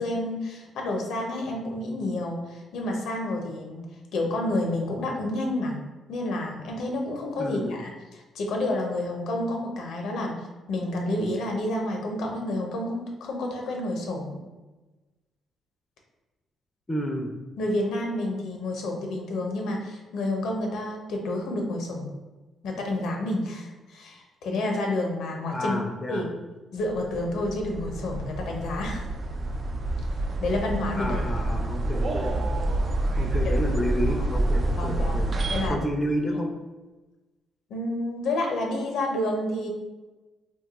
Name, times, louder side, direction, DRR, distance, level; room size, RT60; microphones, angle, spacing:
voice 1, 0.0-5.8 6.1-10.4 10.7-14.4 17.6-22.1 22.6-25.8 26.1-26.2 26.7-29.1 30.4-31.2 34.2-34.3 34.8-35.2 35.5-35.8 37.7-39.7, left 1 dB, 80° left, 1 dB, 0.6 m, -29 dB
voice 2, 7.4-7.8 16.9-17.3 25.5-26.3 31.0-32.4 33.2-35.3 35.7-36.5, equal, 20° left, 2 dB, 0.4 m, -30 dB
sound 1, 26.9-35.7, right 1 dB, 45° right, 0.3 m, -27 dB
2.6 x 2.3 x 3.9 m, 1.2 s
cardioid pair, 90°, 0 cm